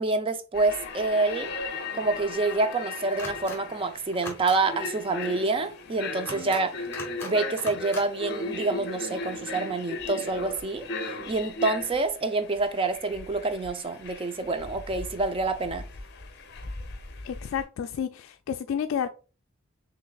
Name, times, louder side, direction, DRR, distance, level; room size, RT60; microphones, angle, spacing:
voice 1, 0.0-1.5 1.9-6.7 7.2-10.9 11.3-15.8, right 3 dB, 25° right, 0.4 m, -27 dB
sound 1, 0.5-17.6, left 3 dB, 55° left, 0.7 m, -37 dB
sound 2, 3.2-3.6 4.1-4.6 6.2-6.6 6.9-7.3 7.6-8.0, left 2 dB, 10° left, 1.3 m, -39 dB
voice 2, 17.2-19.1, left 8 dB, 80° left, 0.3 m, -30 dB
5.8 x 3.1 x 2.3 m
head